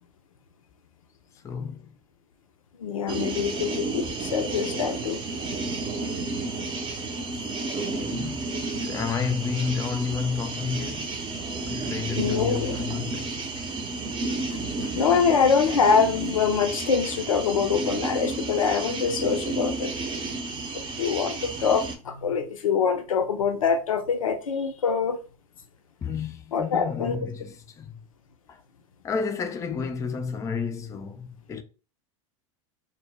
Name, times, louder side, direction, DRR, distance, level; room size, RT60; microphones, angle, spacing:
voice 1, 1.4-1.9 7.7-8.5 8.8-11.1 11.6-13.4 26.0-27.9 28.5-28.6 29.0-31.6, left 5 dB, 20° left, 0.3 m, -31 dB
voice 2, 2.8-5.2 12.2-12.8 14.5-19.9 21.0-25.2 26.5-27.2, left 6 dB, 85° left, 0.4 m, -24 dB
sound 1, 3.1-22.0, right 3 dB, 30° right, 0.6 m, -32 dB
2.0 x 2.0 x 3.4 m
hypercardioid pair, 90°, 17 cm